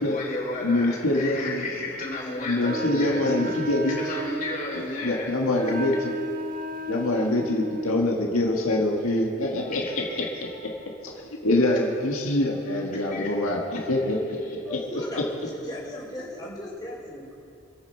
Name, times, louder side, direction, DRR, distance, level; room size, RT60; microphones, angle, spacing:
voice 1, 0.0-5.3 9.6-10.8 11.6-11.8 12.7-13.8 14.4-14.6, left 2 dB, 40° left, -3 dB, 3.4 m, -34 dB
voice 2, 0.6-1.6 2.5-4.0 5.0-6.1 6.9-10.0 11.0-14.2 14.7-14.8, left 1 dB, 85° left, -1 dB, 1.7 m, -25 dB
Wind instrument woodwind instrument, 2.6-8.1, right 1 dB, 40° right, 0.6 m, -34 dB
voice 3, 14.6-17.4, left 1 dB, 20° left, -7 dB, 2.8 m, -37 dB
26.0 x 8.8 x 4.5 m, 2.7 s
head